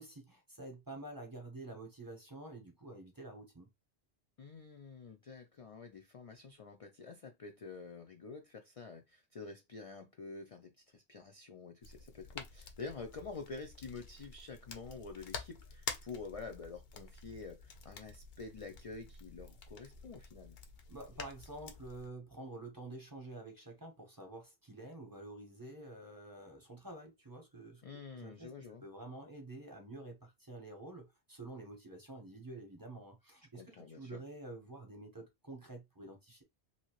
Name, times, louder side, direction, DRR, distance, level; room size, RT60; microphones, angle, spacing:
voice 1, 0.0-3.7 20.9-36.4, right 2 dB, 20° right, 0.8 m, -49 dB
voice 2, 4.4-20.6 27.8-28.8 33.5-34.2, left 4 dB, 50° left, 0.4 m, -48 dB
sound 1, 11.8-22.1, left 5 dB, 65° left, 0.8 m, -49 dB
2.9 x 2.7 x 2.9 m
omnidirectional pair, 1.1 m